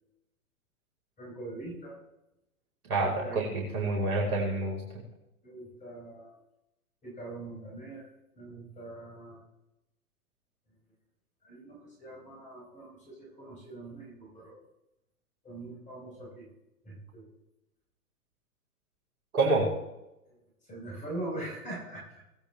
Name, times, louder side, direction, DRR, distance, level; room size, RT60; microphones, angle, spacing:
voice 1, 1.2-2.0 3.0-3.4 5.4-6.4 7.0-8.1 8.3-9.4 11.4-14.6 15.4-16.5 16.8-17.3 20.7-22.0, right 2 dB, 15° left, -2 dB, 4.6 m, -42 dB
voice 2, 2.9-5.0 19.3-19.7, right 2 dB, 70° right, -2 dB, 5.2 m, -28 dB
21.5 x 8.8 x 3.6 m, 0.91 s
hypercardioid pair, 120°, 45 cm